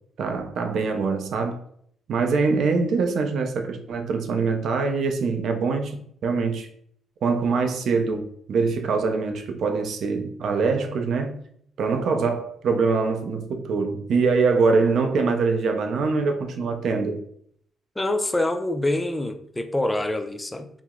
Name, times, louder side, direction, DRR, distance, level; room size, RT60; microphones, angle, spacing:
voice 1, 0.2-1.6 2.1-6.7 7.2-11.4 11.8-17.2, right 4 dB, 65° right, 0.5 m, -24 dB
voice 2, 18.0-20.7, left 1 dB, 15° left, 0.3 m, -25 dB
2.8 x 2.0 x 3.6 m
cardioid pair, 90°, 0 cm